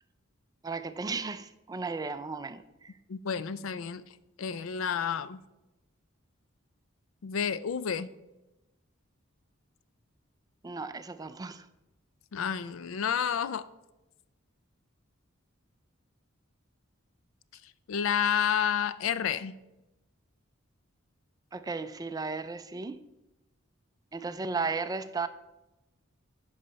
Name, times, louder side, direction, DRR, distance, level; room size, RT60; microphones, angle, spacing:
voice 1, 0.6-2.9 10.6-11.7 21.5-23.0 24.1-25.3, right 4 dB, 20° right, 0.3 m, -35 dB
voice 2, 3.1-4.0 4.4-5.4 7.2-8.1 12.3-13.7 17.9-19.5, left 7 dB, 75° left, 0.4 m, -30 dB
10.0 x 5.5 x 4.1 m
head